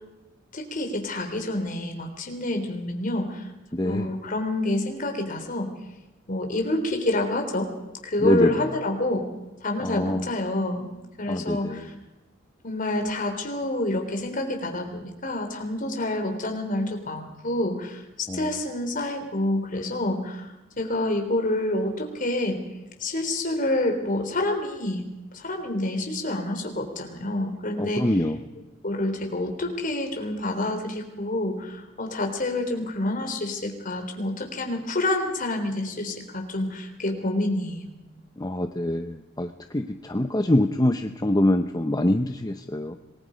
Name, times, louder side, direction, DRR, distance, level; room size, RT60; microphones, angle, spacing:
voice 1, 0.5-3.5 3.8-5.7 6.3-7.7 8.0-9.2 9.6-11.9 12.6-18.0 18.3-20.5 20.8-22.6 23.0-25.0 25.3-28.2 28.8-37.9, left 1 dB, 45° left, 4 dB, 3.6 m, -28 dB
voice 2, 3.7-4.1 8.2-8.5 9.8-10.3 11.3-11.9 18.3-18.5 27.8-28.4 38.4-43.0, left 1 dB, 20° left, 6 dB, 0.8 m, -24 dB
26.0 x 20.5 x 5.2 m, 1.0 s
head